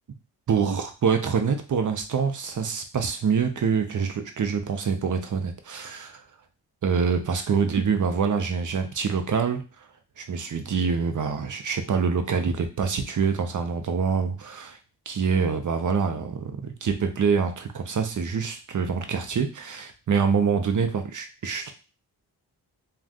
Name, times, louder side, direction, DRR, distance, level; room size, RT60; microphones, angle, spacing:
voice 1, 0.5-6.2 6.8-9.6 10.2-14.8 15.1-21.7, right 6 dB, 50° right, 6 dB, 0.7 m, -25 dB
2.5 x 2.3 x 3.5 m, 0.33 s
cardioid pair, 50°, 40 cm